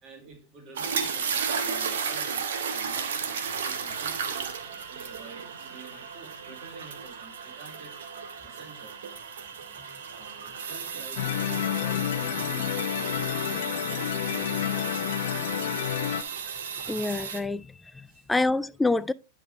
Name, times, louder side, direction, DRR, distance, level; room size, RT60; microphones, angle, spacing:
voice 1, 0.0-4.6 4.9-8.0 8.4-9.0 10.2-13.8 14.2-15.4 18.1-18.2, right 4 dB, 45° right, 2.0 m, -49 dB
sound 1, 0.7-17.4, right 6 dB, 75° right, 1.1 m, -34 dB
sound 2, 11.2-16.2, left 12 dB, 65° left, 0.6 m, -29 dB
voice 2, 16.8-17.7 18.0-19.1, left 3 dB, 10° left, 0.3 m, -27 dB
10.0 x 4.8 x 3.3 m
hypercardioid pair, 100°, 0 cm